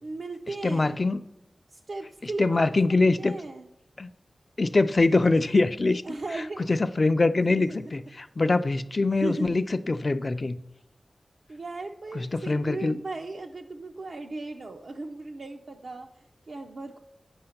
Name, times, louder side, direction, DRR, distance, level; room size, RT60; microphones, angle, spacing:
voice 1, 0.0-1.0 1.7-3.7 6.0-6.7 7.5-7.9 9.1-9.6 11.5-17.0, right 3 dB, 65° right, 1 dB, 0.6 m, -37 dB
voice 2, 0.6-1.2 2.4-3.3 4.0-4.1 4.6-6.0 6.7-10.6 12.1-13.0, left 3 dB, 40° left, 12 dB, 0.4 m, -23 dB
8.8 x 5.6 x 5.7 m, 0.80 s
wide cardioid pair, 100°, 0 cm